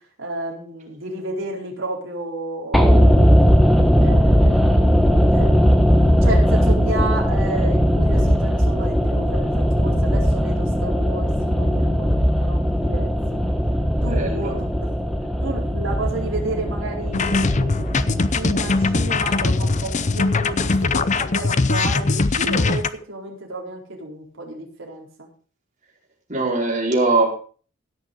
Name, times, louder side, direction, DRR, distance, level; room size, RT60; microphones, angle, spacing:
voice 1, 0.2-3.6 4.0-4.8 5.1-5.7 6.2-13.4 14.0-14.6 15.0-15.1 15.4-25.3, right 2 dB, 65° right, -1 dB, 4.3 m, -32 dB
sound 1, 2.7-20.9 21.2-21.3, equal, ahead, 1.3 m, -19 dB
voice 2, 14.0-14.6 26.3-27.3, right 3 dB, 35° right, -3 dB, 4.9 m, -21 dB
sound 2, 17.1-22.9, left 3 dB, 35° left, 0.6 m, -21 dB
16.5 x 6.6 x 5.4 m, 0.41 s
head